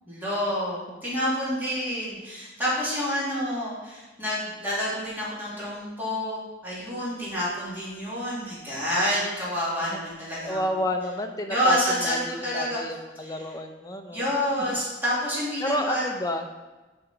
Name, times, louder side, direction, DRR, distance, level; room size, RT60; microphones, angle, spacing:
voice 1, 0.1-10.6 11.4-12.8 13.2-13.5 14.1-16.0, equal, 10° right, -9 dB, 2.9 m, -28 dB
voice 2, 10.5-14.2 14.7-14.8 15.6-16.4, left 1 dB, 20° left, 4 dB, 0.7 m, -30 dB
6.9 x 5.1 x 5.9 m, 1.2 s
head